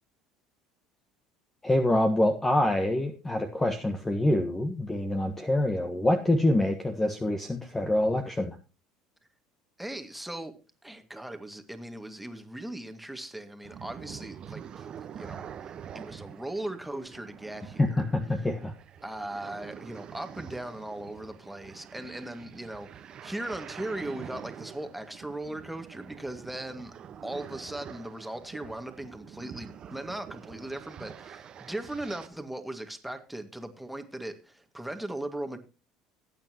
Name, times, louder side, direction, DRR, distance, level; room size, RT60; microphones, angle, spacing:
voice 1, 1.6-8.6 17.8-18.7, left 1 dB, 15° left, 1.5 m, -26 dB
voice 2, 9.8-10.5 10.8-18.0 19.0-26.9 27.2-35.6, right 1 dB, 5° right, 2.0 m, -38 dB
sound 1, 13.6-32.3, right 8 dB, 45° right, 1.2 m, -46 dB
18.0 x 9.1 x 3.0 m
hypercardioid pair, 70°, 2 cm